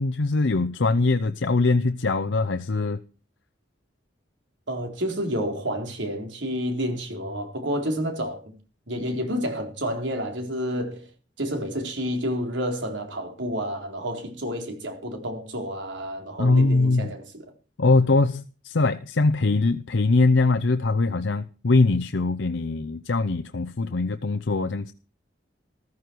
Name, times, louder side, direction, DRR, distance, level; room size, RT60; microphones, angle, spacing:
voice 1, 0.0-3.0 16.4-17.1 17.8-24.9, left 3 dB, 85° left, 0.7 m, -22 dB
voice 2, 4.7-8.5 8.9-11.1 11.4-17.4, equal, 85° right, 4.0 m, -30 dB
14.5 x 14.5 x 4.7 m
head